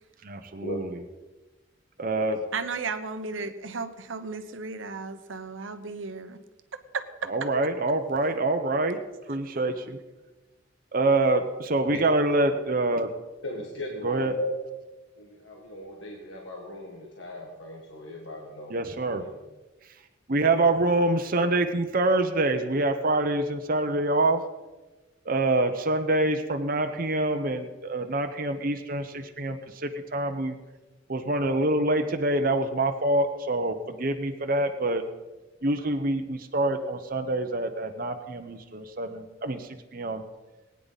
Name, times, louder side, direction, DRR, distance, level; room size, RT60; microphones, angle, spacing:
voice 1, 0.2-1.0 2.0-2.4 7.2-9.0 9.3-10.0 10.9-13.1 14.0-14.4 18.7-19.2 20.3-24.4 25.2-30.6 31.1-35.0 35.6-40.2, right 2 dB, 45° right, 6 dB, 0.9 m, -26 dB
voice 2, 2.5-6.4 6.7-7.5, right 4 dB, 85° right, 9 dB, 1.0 m, -34 dB
voice 3, 13.4-14.5 15.2-19.3, left 1 dB, 75° left, -1 dB, 1.9 m, -37 dB
20.0 x 9.8 x 4.1 m, 1.1 s
head